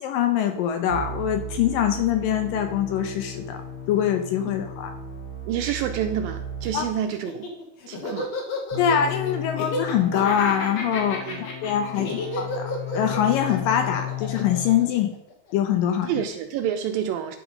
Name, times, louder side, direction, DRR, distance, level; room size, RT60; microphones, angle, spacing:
voice 1, 0.0-3.6 3.9-4.9 6.7-6.8 8.8-12.7 12.9-15.1 15.5-16.1, left 9 dB, 75° left, 5 dB, 2.2 m, -24 dB
sound 1, 0.9-6.8 8.7-14.8, left 3 dB, 30° left, 3.4 m, -35 dB
voice 2, 5.5-7.5 7.9-8.3 11.2-11.5 12.0-12.2 16.1-17.4, right 9 dB, 80° right, 7 dB, 2.2 m, -28 dB
Laughter, 7.1-15.5, left 2 dB, 55° left, 2.1 m, -32 dB
11.0 x 5.0 x 5.2 m, 0.79 s
omnidirectional pair, 4.5 m